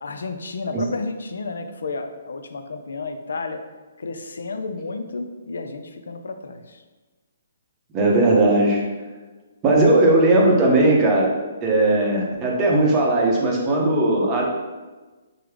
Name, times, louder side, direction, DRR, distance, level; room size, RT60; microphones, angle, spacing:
voice 1, 0.0-3.6 4.0-6.8, left 3 dB, 80° left, 7 dB, 0.3 m, -32 dB
voice 2, 7.9-8.8 9.6-14.4, right 2 dB, 25° right, -2 dB, 0.6 m, -18 dB
3.4 x 2.0 x 3.2 m, 1.2 s
hypercardioid pair, 145°, 0 cm